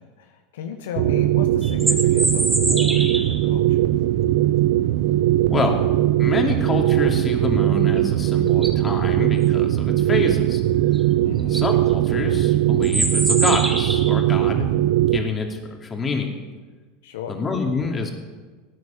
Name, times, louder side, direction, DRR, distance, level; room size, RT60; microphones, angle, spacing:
voice 1, 0.0-3.8 11.2-11.6 17.0-17.4, left 7 dB, 70° left, 6 dB, 1.0 m, -35 dB
sound 1, 0.9-15.2, right 14 dB, 60° right, 0.8 m, -20 dB
sound 2, 1.6-3.4 8.0-8.1 8.5-8.9 10.9-11.0 11.4-11.7 12.8-14.2, right 1 dB, 10° right, 1.8 m, -25 dB
voice 2, 5.5-5.8 6.2-10.6 11.5-14.7 15.1-16.3 17.3-18.1, left 4 dB, 25° left, 2 dB, 2.7 m, -27 dB
18.0 x 9.5 x 5.8 m, 1.4 s
hypercardioid pair, 85°, 0 cm